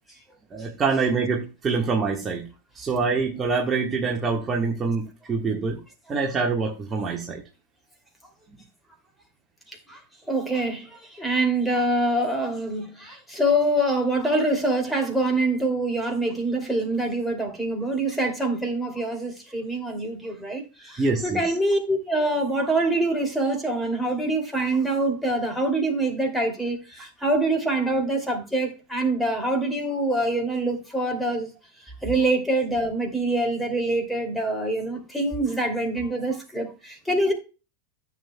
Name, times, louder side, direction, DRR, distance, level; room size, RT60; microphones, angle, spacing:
voice 1, 0.5-2.5 2.7-5.8 6.1-7.4 21.0-21.5, right 4 dB, 20° right, 1.5 m, -25 dB
voice 2, 9.7-10.0 10.3-31.5 32.0-37.3, right 1 dB, ahead, 2.6 m, -25 dB
14.0 x 7.3 x 2.2 m
figure-of-eight pair, 90°, 0 cm